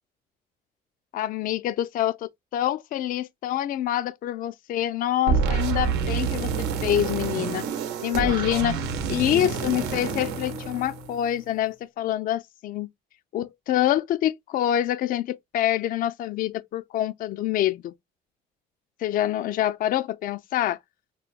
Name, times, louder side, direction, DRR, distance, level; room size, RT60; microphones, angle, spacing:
voice 1, 1.1-6.5 6.8-7.6 8.0-8.8 9.1-12.9 13.3-17.9 19.0-20.8, left 12 dB, 55° left, 0.4 m, -26 dB
sound 1, 5.3-11.4, right 6 dB, 90° right, 0.8 m, -28 dB
5.5 x 2.2 x 2.4 m
cardioid pair, 110°, 17 cm